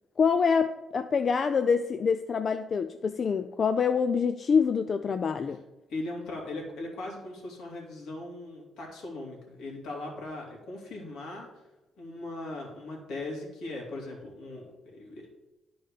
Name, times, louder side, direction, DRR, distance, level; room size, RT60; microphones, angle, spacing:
voice 1, 0.2-5.6, left 6 dB, 45° left, 10 dB, 0.4 m, -26 dB
voice 2, 5.9-11.5 12.0-15.3, left 2 dB, 80° left, -1 dB, 2.5 m, -39 dB
10.0 x 4.3 x 4.9 m, 0.99 s
cardioid pair, 90°, 0 cm